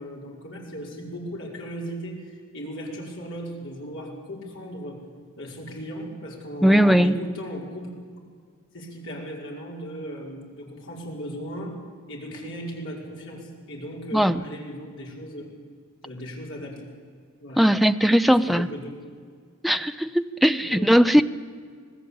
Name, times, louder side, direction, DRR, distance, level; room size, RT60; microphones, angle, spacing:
voice 1, 0.0-5.0 5.4-7.9 8.7-11.8 12.1-15.4 16.0-16.9 17.4-17.6 18.2-18.9 20.6-20.9, equal, 60° left, -2 dB, 5.5 m, -37 dB
voice 2, 6.6-7.1 14.1-14.4 17.6-18.7 19.6-21.2, equal, ahead, 10 dB, 0.6 m, -19 dB
26.5 x 18.5 x 8.8 m, 2.1 s
head